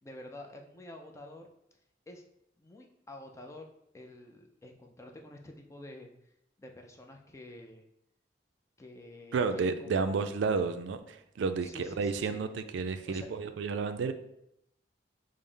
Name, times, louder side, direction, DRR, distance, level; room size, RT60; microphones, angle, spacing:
voice 1, 0.0-1.5 2.1-2.2 2.6-3.7 3.9-6.1 6.6-7.8 8.8-10.3 11.6-12.4 13.0-13.3, left 1 dB, 15° left, 2 dB, 0.4 m, -49 dB
voice 2, 9.3-14.1, right 4 dB, 80° right, 9 dB, 0.3 m, -31 dB
5.4 x 2.0 x 3.2 m, 0.78 s
head